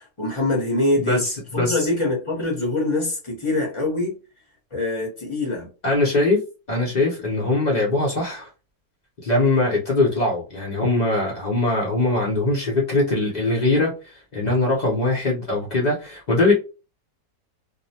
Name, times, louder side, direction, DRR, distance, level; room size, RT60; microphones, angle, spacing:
voice 1, 0.0-1.2 1.5-4.1 4.7-5.7, left 2 dB, 25° left, 0.6 m, -24 dB
voice 2, 1.0-1.9 5.8-6.4 6.7-8.5 9.2-16.5, left 2 dB, 65° left, 0.4 m, -21 dB
2.5 x 2.1 x 2.7 m
omnidirectional pair, 1.7 m